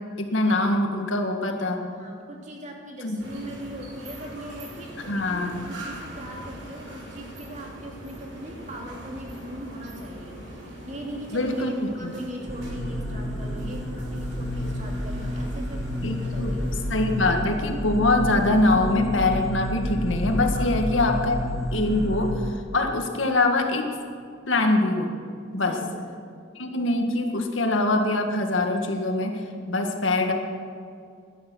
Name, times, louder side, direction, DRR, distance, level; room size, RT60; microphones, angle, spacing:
voice 1, 0.2-1.8 3.0-3.2 5.1-5.7 11.3-11.7 12.0-12.1 16.0-16.5 16.9-21.4 21.7-23.9 24.5-25.1 25.5-25.8 26.6-30.3, left 2 dB, 90° left, 4 dB, 1.9 m, -23 dB
voice 2, 2.0-16.7 20.5-20.8 25.7-26.0, equal, 40° right, -1 dB, 2.9 m, -40 dB
sound 1, 3.2-17.3, right 1 dB, 80° right, 4.9 m, -42 dB
sound 2, 12.5-22.3, equal, ahead, 2.4 m, -30 dB
17.0 x 12.0 x 6.4 m, 2.3 s
head